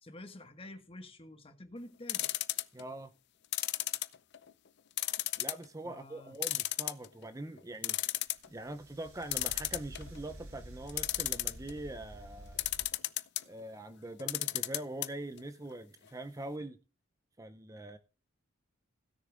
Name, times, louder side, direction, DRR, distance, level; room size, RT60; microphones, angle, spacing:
voice 1, 0.0-2.3 5.8-6.3, left 1 dB, 25° left, 1.2 m, -49 dB
sound 1, 2.1-2.8 3.5-4.5 5.0-5.6 6.0-6.1 6.4-7.2 7.6-7.7 7.8-8.5 9.3-10.2 10.9-11.7 12.6-13.4 14.2-15.1 15.4-15.5 15.7-15.8, left 16 dB, 55° left, 0.5 m, -33 dB
voice 2, 2.7-3.1 5.4-8.2 8.5-12.7 13.5-16.8 17.4-18.0, right 1 dB, 15° right, 0.5 m, -43 dB
sound 2, 8.3-12.9, right 1 dB, 85° right, 5.0 m, -50 dB
16.5 x 6.6 x 3.8 m
head